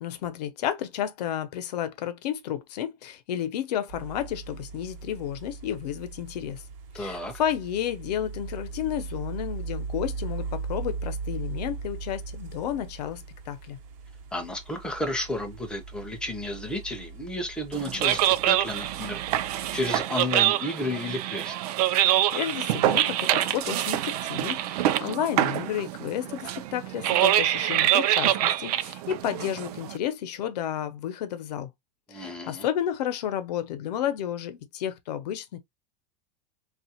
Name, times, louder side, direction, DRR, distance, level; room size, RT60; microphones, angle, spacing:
voice 1, 0.0-6.6 6.9-13.8 22.3-31.7 32.1-35.6, left 10 dB, 85° left, 0.7 m, -32 dB
sound 1, 3.9-20.1, right 5 dB, 55° right, 0.9 m, -39 dB
voice 2, 6.9-7.3 14.3-21.6 32.1-32.7, left 1 dB, 5° left, 0.5 m, -32 dB
sound 2, 17.7-30.0, right 13 dB, 70° right, 0.5 m, -25 dB
3.4 x 2.4 x 2.8 m
supercardioid pair, 155°, 20 cm